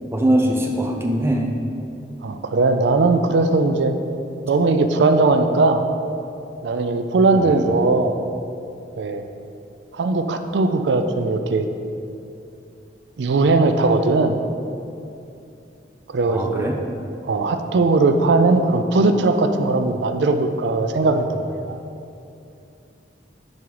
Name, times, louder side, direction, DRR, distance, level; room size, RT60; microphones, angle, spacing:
voice 1, 0.1-1.6 7.3-7.7 16.3-16.8, right 1 dB, 15° right, 0 dB, 0.6 m, -21 dB
voice 2, 2.2-3.9 4.5-5.8 6.6-8.1 9.0-9.2 9.9-11.7 13.2-14.4 16.1-16.7 17.3-21.8, right 3 dB, 70° right, 8 dB, 0.4 m, -19 dB
5.4 x 4.8 x 4.6 m, 2.7 s
head